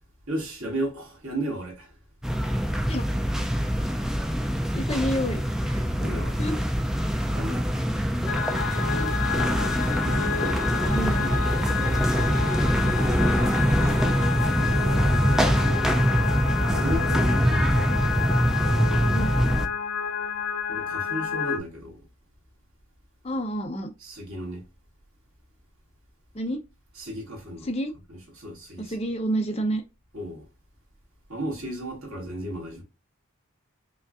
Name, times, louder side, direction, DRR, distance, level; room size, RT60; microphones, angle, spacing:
voice 1, 0.3-2.0 5.0-5.1 6.0-6.4 7.3-7.8 9.7-10.7 11.7-12.0 16.7-18.1 20.7-22.1 24.0-24.7 27.0-27.7 28.1-29.0 30.1-30.5 31.3-32.8, right 1 dB, 85° right, 2.0 m, -34 dB
sound 1, 2.2-19.7, equal, ahead, 0.3 m, -24 dB
voice 2, 4.7-5.8 6.4-6.6 8.3-8.5 8.9-9.1 10.4-11.3 12.6-12.9 13.4-14.2 17.0-17.1 19.1-19.4 23.2-23.9 26.3-26.6 27.6-27.9 28.8-29.8, right 1 dB, 30° left, 0.7 m, -30 dB
sound 2, 8.3-21.6, left 6 dB, 65° left, 0.4 m, -30 dB
5.1 x 2.5 x 2.4 m
head